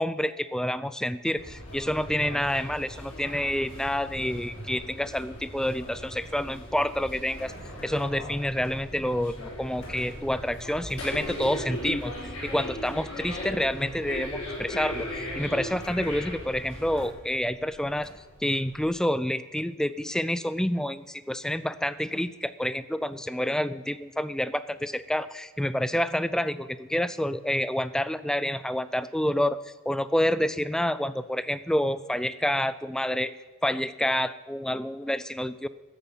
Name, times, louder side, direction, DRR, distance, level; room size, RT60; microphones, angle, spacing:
voice 1, 0.0-7.5 7.8-18.1 18.4-33.3 33.6-35.7, left 1 dB, 5° left, 15 dB, 0.3 m, -28 dB
sound 1, 1.4-17.1, left 1 dB, 85° left, 5.7 m, -38 dB
sound 2, 6.7-18.9, equal, 65° left, 4.2 m, -52 dB
14.0 x 7.9 x 7.3 m, 1.3 s
head